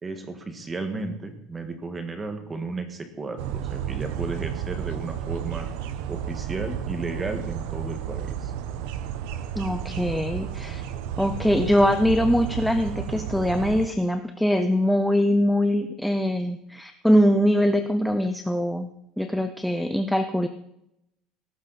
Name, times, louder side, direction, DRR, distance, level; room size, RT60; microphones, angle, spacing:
voice 1, 0.0-5.7 6.1-8.5, right 3 dB, 15° right, 6 dB, 1.8 m, -34 dB
sound 1, 3.4-13.9, right 9 dB, 75° right, 1.1 m, -32 dB
voice 2, 9.6-10.8 11.2-18.9 19.2-20.5, equal, ahead, 7 dB, 0.6 m, -22 dB
17.5 x 14.0 x 4.2 m, 0.82 s
cardioid pair, 175°, 0 cm